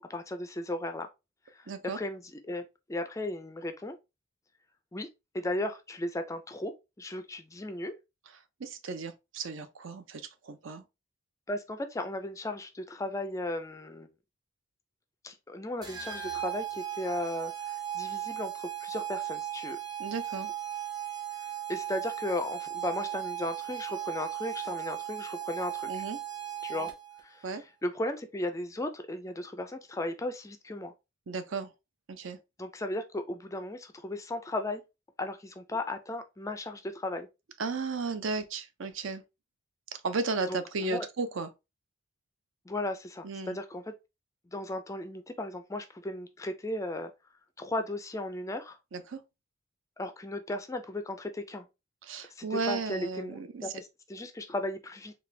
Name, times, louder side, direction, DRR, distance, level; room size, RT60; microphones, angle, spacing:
voice 1, 0.1-1.1 1.5-4.0 4.9-5.1 5.3-7.9 11.5-14.1 15.2-19.8 21.7-26.0 26.6-26.9 27.2-30.9 32.6-34.8 35.2-37.3 40.5-41.1 42.7-43.9 44.5-47.1 47.6-48.8 50.0-51.7 52.3-55.1, left 1 dB, 15° left, 0.3 m, -36 dB
voice 2, 1.7-2.0 8.6-10.8 20.0-20.5 25.9-26.2 27.4-27.6 31.3-31.7 32.1-32.4 37.6-39.2 39.9-41.5 43.2-43.6 48.9-49.2 52.1-53.6, right 4 dB, 60° right, 0.5 m, -34 dB
sound 1, 15.8-27.2, right 11 dB, 20° right, 0.8 m, -37 dB
4.1 x 2.3 x 3.2 m
head